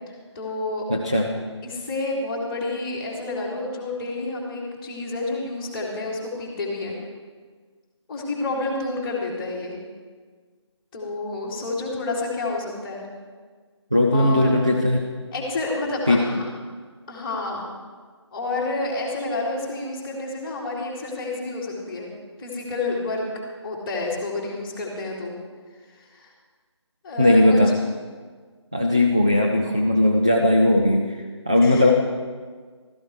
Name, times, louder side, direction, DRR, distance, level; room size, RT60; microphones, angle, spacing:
voice 1, 0.3-0.8 1.6-7.0 8.1-9.8 10.9-13.1 14.1-14.5 15.3-16.4 17.1-17.7 18.3-22.1 22.4-23.3 23.6-25.3 25.9-26.3 27.0-27.6 31.6-31.9, left 2 dB, 15° left, -6 dB, 2.6 m, -29 dB
voice 2, 0.9-1.4 13.9-15.0 16.1-16.3 27.2-27.8 28.7-31.9, left 1 dB, 10° right, 0 dB, 0.3 m, -18 dB
14.0 x 14.0 x 4.7 m, 1.5 s
figure-of-eight pair, 165°, 15 cm